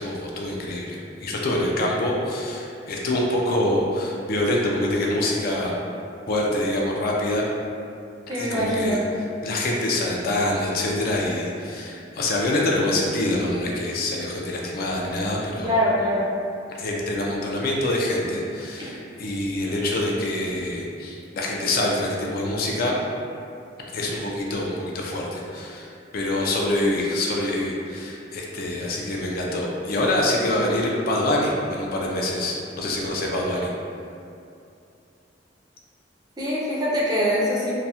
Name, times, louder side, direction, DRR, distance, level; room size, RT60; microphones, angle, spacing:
voice 1, 0.0-5.8 6.3-7.5 8.4-9.0 9.4-15.7 16.8-23.0 23.9-25.9 26.1-33.7, left 1 dB, 55° left, -2 dB, 0.3 m, -25 dB
voice 2, 8.3-9.1 15.6-16.3 18.0-18.1 18.8-18.9 36.4-37.7, equal, 20° right, -5 dB, 0.4 m, -23 dB
2.3 x 2.0 x 2.7 m, 2.5 s
head